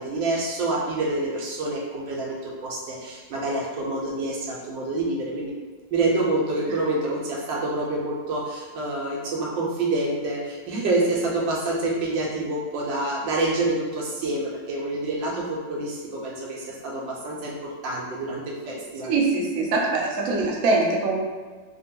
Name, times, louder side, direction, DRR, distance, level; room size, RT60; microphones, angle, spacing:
voice 1, 0.0-5.5 5.9-19.1, right 2 dB, 85° right, -3 dB, 1.4 m, -27 dB
voice 2, 19.0-21.2, right 3 dB, 70° right, -2 dB, 0.8 m, -23 dB
3.4 x 2.1 x 2.8 m, 1.4 s
omnidirectional pair, 2.0 m